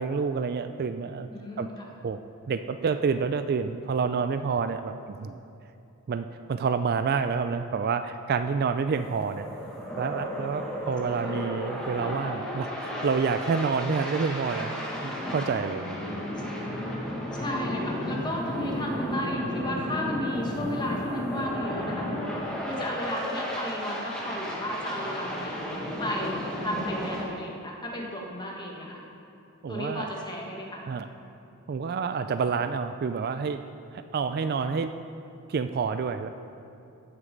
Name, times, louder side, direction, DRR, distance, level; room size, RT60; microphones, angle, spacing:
voice 1, 0.0-1.3 1.6-1.7 2.0-2.2 2.5-4.9 5.2-5.4 6.1-9.5 10.0-14.8 15.0-16.2 29.6-30.1 30.9-31.1 31.7-33.6 33.9-34.9 35.5-36.3, right 5 dB, 45° right, 10 dB, 0.3 m, -28 dB
voice 2, 1.3-1.9 11.0-11.5 17.3-22.1 22.6-25.5 26.0-29.0 29.7-30.8, equal, 20° left, -1 dB, 1.5 m, -34 dB
sound 1, 8.9-27.2, left 1 dB, 5° left, 1.5 m, -33 dB
15.0 x 6.8 x 5.2 m, 2.7 s
head